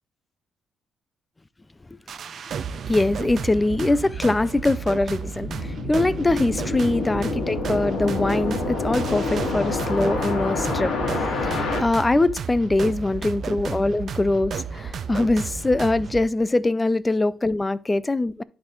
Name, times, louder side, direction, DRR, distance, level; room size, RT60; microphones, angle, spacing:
sound 1, 2.1-16.2, right 6 dB, 55° right, 0.5 m, -32 dB
voice 1, 2.9-11.0 11.4-18.4, left 2 dB, 20° left, 0.4 m, -23 dB
sound 2, 5.4-11.8, left 4 dB, 65° left, 2.0 m, -28 dB
11.0 x 4.1 x 3.1 m
cardioid pair, 90°, 0 cm